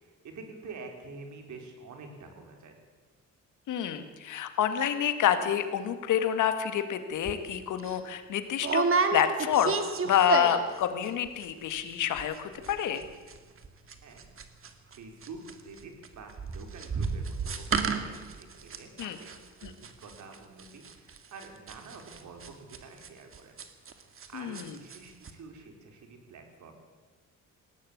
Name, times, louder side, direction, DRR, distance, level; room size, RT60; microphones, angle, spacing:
voice 1, 0.0-2.8 14.0-14.2 15.0-23.6 24.3-26.7, right 4 dB, 70° right, 4 dB, 4.4 m, -47 dB
voice 2, 3.7-8.8 9.1-9.8 10.0-13.0 19.0-19.2 19.6-19.7 24.3-24.7, left 9 dB, 80° left, 9 dB, 2.0 m, -28 dB
sound 1, 7.2-7.4 7.8-8.0 8.6-10.8 11.0-11.4 11.7-11.8 12.0-12.4 12.6-24.3 24.5-25.0 25.2-25.3, right 5 dB, 45° right, 2.2 m, -31 dB
19.5 x 17.0 x 8.7 m, 1.4 s
cardioid pair, 90°, 30 cm